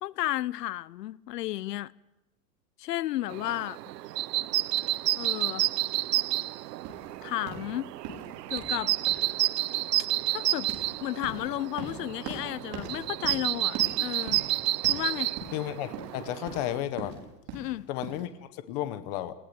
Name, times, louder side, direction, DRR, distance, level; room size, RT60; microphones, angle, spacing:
voice 1, 0.0-1.9 2.8-3.8 5.2-5.7 7.2-7.9 8.5-9.0 10.3-10.7 11.0-14.4 14.9-15.4 17.5-17.9, left 15 dB, 85° left, 0.8 m, -33 dB
sound 1, 3.3-16.8, right 16 dB, 90° right, 0.8 m, -30 dB
sound 2, 6.8-18.2, right 3 dB, 30° right, 5.0 m, -42 dB
voice 2, 15.5-17.1 17.9-19.3, left 13 dB, 25° left, 0.9 m, -33 dB
20.0 x 17.5 x 8.6 m
supercardioid pair, 175°, 47 cm